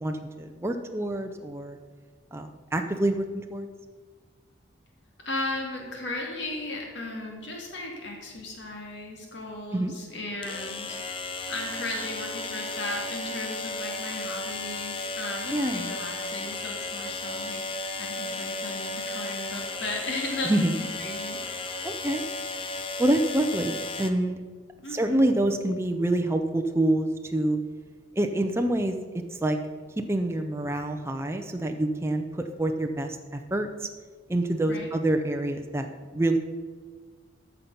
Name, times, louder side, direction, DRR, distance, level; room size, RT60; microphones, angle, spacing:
voice 1, 0.0-1.8 2.3-3.7 9.7-9.9 15.5-15.9 20.4-20.7 21.8-22.3 23.0-24.4 24.9-27.6 28.2-28.9 29.4-29.6 30.1-33.9 34.3-35.9 36.1-36.4, right 1 dB, 15° right, 5 dB, 0.5 m, -26 dB
voice 2, 5.2-20.7 21.0-21.7 24.8-25.4 34.6-34.9, left 2 dB, 60° left, 0 dB, 2.3 m, -36 dB
sound 1, 8.4-8.5 10.4-24.1, left 3 dB, 25° left, 0.6 m, -34 dB
13.5 x 5.8 x 5.5 m, 1.5 s
head